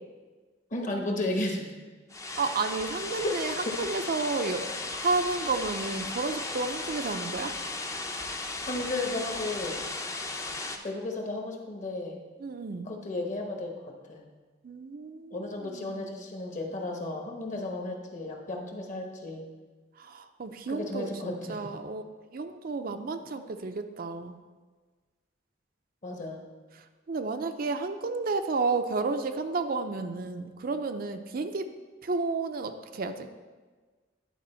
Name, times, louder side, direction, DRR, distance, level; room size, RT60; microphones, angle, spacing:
voice 1, 0.7-1.7 3.7-3.8 8.7-9.8 10.8-12.2 12.8-14.2 15.3-19.5 20.7-21.7 26.0-26.4, left 2 dB, 45° left, 2 dB, 1.1 m, -34 dB
sound 1, 2.1-10.8, left 3 dB, 15° left, 0.5 m, -36 dB
voice 2, 2.4-7.5 12.4-12.9 14.6-16.1 20.0-22.0 22.3-24.4 27.1-31.7 32.0-33.3, right 3 dB, 55° right, 7 dB, 0.5 m, -32 dB
10.0 x 4.6 x 4.3 m, 1.4 s
head